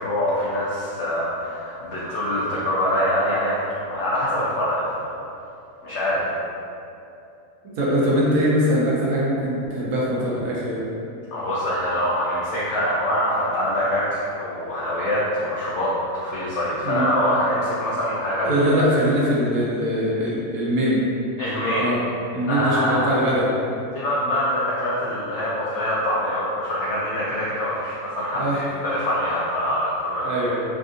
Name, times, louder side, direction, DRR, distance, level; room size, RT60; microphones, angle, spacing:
voice 1, 0.0-5.1 5.8-6.3 11.3-18.6 21.4-21.9 22.5-23.2 23.9-30.3, equal, 80° left, -8 dB, 0.6 m, -24 dB
voice 2, 7.8-10.8 16.8-17.1 18.4-21.0 21.8-22.0 22.3-23.5 28.3-28.6 30.2-30.6, equal, 65° right, -6 dB, 1.0 m, -22 dB
3.5 x 2.5 x 2.4 m, 2.7 s
omnidirectional pair, 1.7 m